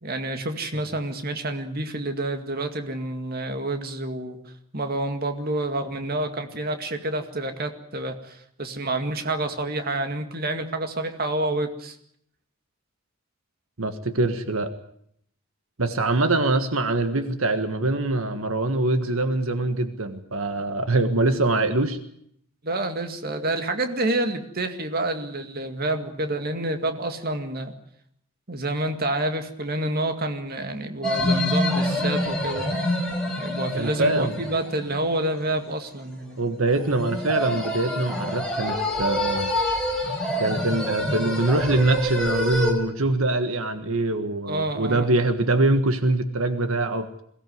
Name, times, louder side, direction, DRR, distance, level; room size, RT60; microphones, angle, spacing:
voice 1, 0.0-4.4 4.7-12.0 22.6-27.7 28.5-32.8 33.4-36.4 44.5-45.1, right 2 dB, 45° right, 7 dB, 2.2 m, -28 dB
voice 2, 13.8-14.7 15.8-22.0 33.7-34.4 36.4-39.5 40.4-47.2, right 2 dB, 75° right, 8 dB, 1.6 m, -23 dB
sound 1, 31.0-35.4 36.7-42.7, left 1 dB, 5° left, 4.9 m, -27 dB
22.0 x 17.5 x 9.5 m, 0.69 s
head